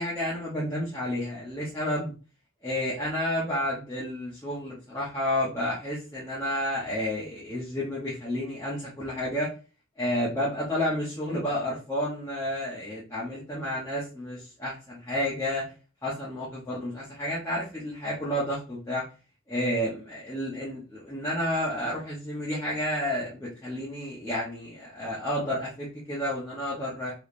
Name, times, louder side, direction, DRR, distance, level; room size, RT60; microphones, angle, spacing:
voice 1, 0.0-2.1 2.6-9.5 10.0-15.6 16.0-19.0 19.5-27.1, left 1 dB, 15° left, -8 dB, 0.7 m, -31 dB
3.4 x 3.1 x 2.5 m, 0.35 s
head